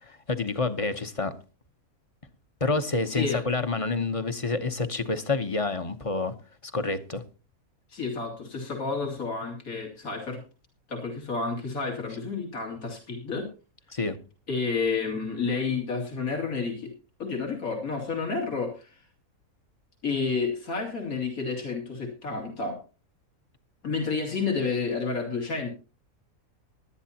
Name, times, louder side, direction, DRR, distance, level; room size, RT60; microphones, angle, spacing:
voice 1, 0.3-1.3 2.6-6.3 6.7-7.2 13.9-14.2, left 3 dB, 30° left, 0.8 m, -28 dB
voice 2, 3.1-3.4 7.9-10.4 10.9-13.5 14.5-16.9 17.2-19.0 20.0-22.8 23.8-25.7, left 4 dB, 75° left, 3.0 m, -30 dB
19.5 x 11.0 x 2.8 m
omnidirectional pair, 1.5 m